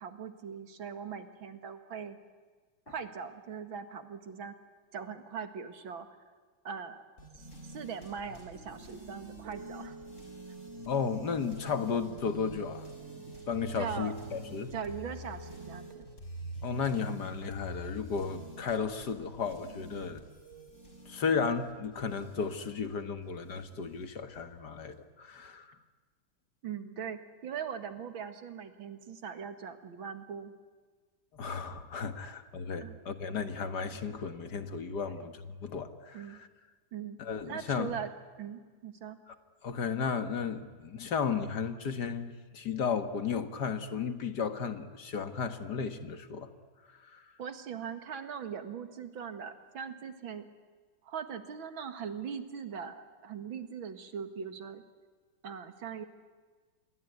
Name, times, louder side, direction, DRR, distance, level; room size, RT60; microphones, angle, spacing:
voice 1, 0.0-2.2 2.9-4.5 4.9-6.1 6.6-7.0 7.3-9.9 12.5-12.6 13.8-14.1 14.7-16.1 26.6-30.5 32.2-32.3 32.8-33.0 35.0-35.3 36.1-36.4 36.9-37.2 37.5-38.1 38.4-39.2 47.4-50.5 51.0-54.8 55.4-56.0, right 7 dB, 85° right, 9 dB, 2.6 m, -40 dB
sound 1, 7.2-24.4, equal, 35° left, 6.1 m, -47 dB
Telephone, 9.1-16.2, right 6 dB, 35° right, 1.9 m, -50 dB
voice 2, 10.9-12.9 13.3-14.7 16.6-20.2 21.1-25.7 31.3-36.5 37.2-37.9 39.3-39.4 39.6-46.5 47.1-47.2, left 6 dB, 60° left, 9 dB, 2.0 m, -34 dB
28.0 x 22.0 x 9.5 m, 1.5 s
omnidirectional pair, 2.1 m